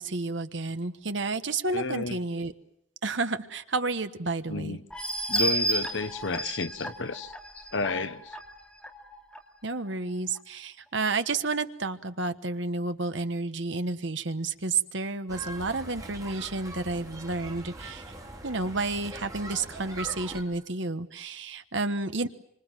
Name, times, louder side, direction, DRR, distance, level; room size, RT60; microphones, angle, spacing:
voice 1, 0.0-2.5 3.0-4.8 9.6-18.0 18.4-22.3, right 3 dB, 65° right, 1.3 m, -31 dB
voice 2, 1.7-2.2 4.5-4.8 5.3-8.4, left 3 dB, 65° left, 0.9 m, -32 dB
sound 1, 4.9-9.4 9.9-10.0 10.4-10.5, right 1 dB, 5° left, 2.6 m, -32 dB
sound 2, 15.3-20.4, right 1 dB, 20° right, 3.8 m, -42 dB
26.5 x 26.0 x 7.5 m
head